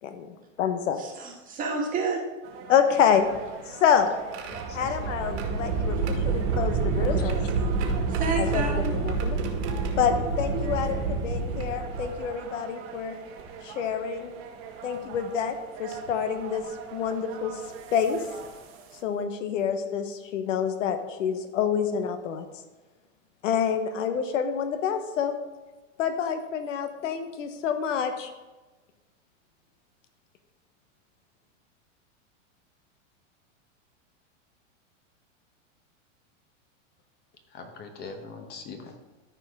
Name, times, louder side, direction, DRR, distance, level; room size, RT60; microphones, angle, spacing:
voice 1, 0.0-1.0 2.7-3.3 3.7-4.1 4.7-7.4 8.3-9.4 10.0-13.1 13.6-14.3 14.8-16.6 16.9-17.6 17.9-18.2 19.0-22.4 23.4-25.3 26.0-28.3, left 8 dB, 75° left, 8 dB, 1.1 m, -27 dB
voice 2, 1.0-2.2 8.1-9.0, right 4 dB, 20° right, -1 dB, 1.6 m, -30 dB
sound 1, 2.4-19.0, right 6 dB, 35° right, 1.2 m, -44 dB
sound 2, 3.2-12.5 13.4-13.5 14.9-15.2 15.9-16.1 17.7-17.8 18.2-18.5, right 4 dB, 60° right, 1.9 m, -28 dB
voice 3, 4.5-5.0 37.5-39.0, left 4 dB, 25° left, 5 dB, 1.1 m, -42 dB
14.0 x 4.7 x 3.6 m, 1.2 s
supercardioid pair, 145°, 38 cm